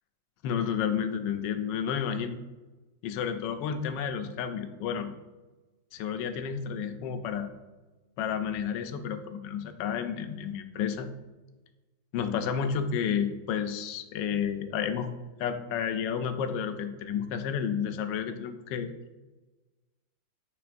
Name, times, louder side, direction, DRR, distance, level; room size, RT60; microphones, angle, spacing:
voice 1, 0.4-2.4 3.0-5.1 5.9-7.5 8.2-11.1 12.1-15.1 15.4-18.9, left 7 dB, 75° left, 8 dB, 1.2 m, -31 dB
9.9 x 3.9 x 2.5 m, 1.2 s
omnidirectional pair, 2.0 m